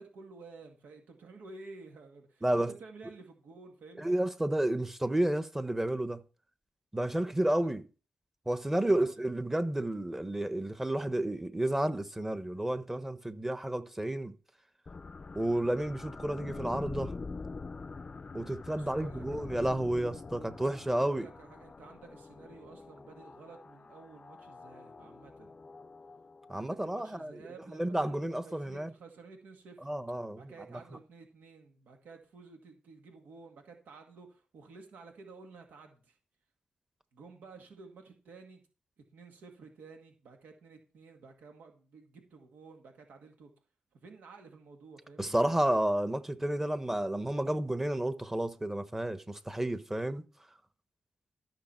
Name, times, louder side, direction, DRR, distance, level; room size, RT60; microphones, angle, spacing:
voice 1, 0.0-4.2 7.6-7.7 8.8-9.1 18.7-19.6 20.9-25.5 26.5-29.9 30.4-36.2 37.1-38.6 39.1-43.5 43.9-45.4, right 4 dB, 90° right, 1.9 m, -52 dB
voice 2, 4.0-6.2 6.9-7.8 8.5-14.3 15.3-17.1 18.3-21.3 26.5-27.3 27.7-28.9 29.8-30.8 45.2-50.2, right 1 dB, 10° right, 1.0 m, -31 dB
sound 1, 14.9-26.8, left 4 dB, 35° left, 0.5 m, -45 dB
13.5 x 6.4 x 4.4 m
cardioid pair, 90°, 3 cm